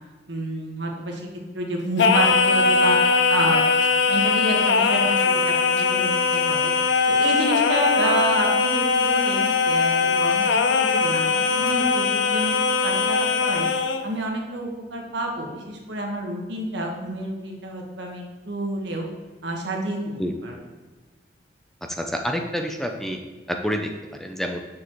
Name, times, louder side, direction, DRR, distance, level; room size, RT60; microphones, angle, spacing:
voice 1, 0.3-1.2 1.5-3.0 3.3-3.6 4.1-5.3 5.6-6.7 7.2-12.6 12.8-13.7 14.0-19.1 19.4-20.6, right 1 dB, 85° right, 0 dB, 1.4 m, -28 dB
Singing, 2.0-14.1, left 4 dB, 85° left, 0.5 m, -21 dB
voice 2, 21.9-23.2 23.5-24.6, equal, ahead, 3 dB, 0.4 m, -28 dB
6.8 x 6.4 x 3.0 m, 1.3 s
head